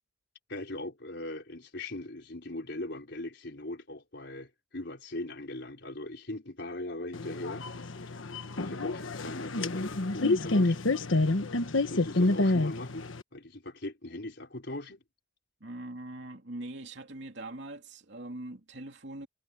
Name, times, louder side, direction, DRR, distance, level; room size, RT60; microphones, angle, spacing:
voice 1, 0.5-7.7 8.6-10.8 11.9-15.0, left 1 dB, 60° left, 5.0 m, -40 dB
sound 1, 7.1-13.2, left 2 dB, 85° left, 1.3 m, -28 dB
voice 2, 15.6-19.3, right 1 dB, 65° right, 2.8 m, -42 dB
head